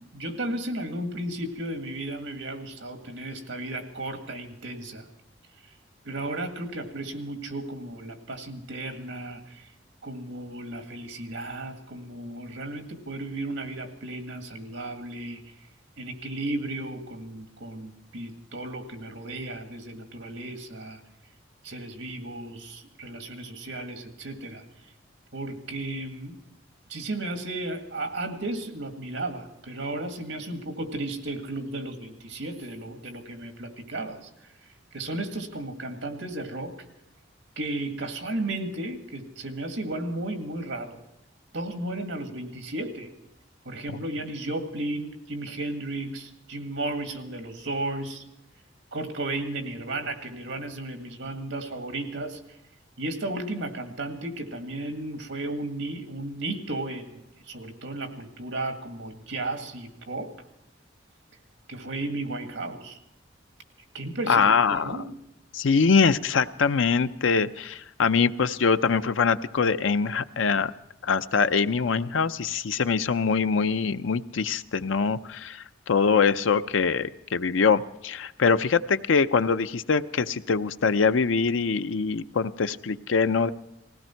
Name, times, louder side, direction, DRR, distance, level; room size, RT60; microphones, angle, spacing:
voice 1, 0.0-5.0 6.0-9.7 10.0-15.4 16.0-21.0 21.6-24.6 25.3-26.4 26.9-34.3 34.9-36.7 37.6-41.0 41.5-43.1 43.7-48.2 48.9-52.4 53.0-60.3 61.7-63.0 63.9-65.1, right 2 dB, 85° right, 5 dB, 2.0 m, -34 dB
voice 2, 64.3-65.0 65.5-70.7 71.0-83.5, left 5 dB, 85° left, 11 dB, 0.6 m, -23 dB
19.5 x 16.5 x 4.5 m, 0.89 s
head